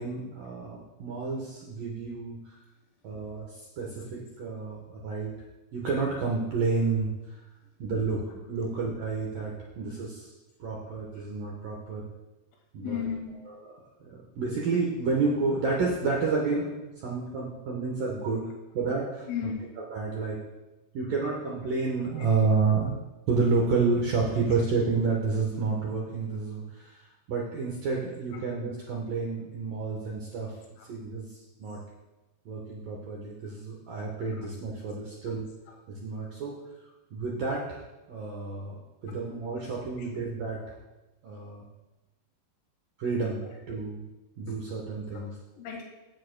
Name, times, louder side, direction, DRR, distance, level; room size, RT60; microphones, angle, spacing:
voice 1, 0.0-2.4 3.0-5.3 5.7-7.1 7.8-8.2 8.5-10.3 10.6-12.1 12.7-13.0 14.0-18.5 18.7-19.5 19.9-20.4 20.9-22.9 23.3-27.0 27.3-30.5 30.9-31.8 32.5-35.5 35.9-36.6 37.1-37.8 38.1-40.6 41.2-41.6 43.0-43.4 43.7-44.0 44.4-45.3, right 4 dB, 75° right, -2 dB, 2.0 m, -30 dB
voice 2, 12.8-13.4 19.3-19.7 22.1-22.5 24.2-24.6 28.3-28.4 30.8-30.9 34.3-34.5 35.1-35.4 35.7-35.8 39.1-40.2 43.4-43.6 44.5-44.6 45.1-45.8, left 8 dB, 90° left, 0 dB, 4.7 m, -39 dB
16.0 x 10.5 x 2.2 m, 1.0 s
omnidirectional pair, 5.7 m